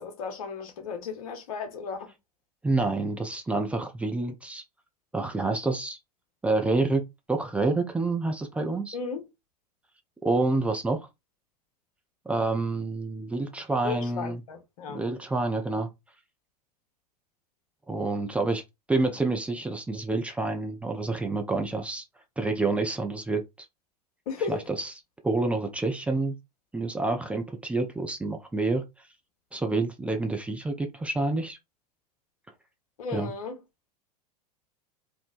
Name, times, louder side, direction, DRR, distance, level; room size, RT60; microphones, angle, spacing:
voice 1, 0.0-2.1 8.9-9.2 13.8-15.0 24.3-24.6 33.0-33.5, left 5 dB, 60° left, 0.9 m, -34 dB
voice 2, 2.6-4.6 5.1-6.0 6.4-9.0 10.2-11.0 12.3-14.4 14.9-15.9 17.9-18.6 18.9-22.0 22.4-23.4 24.5-24.9 25.2-26.4 26.7-28.8 29.5-31.6 33.1-33.3, right 3 dB, 5° right, 0.3 m, -28 dB
3.1 x 2.0 x 2.4 m
figure-of-eight pair, 85°, 21 cm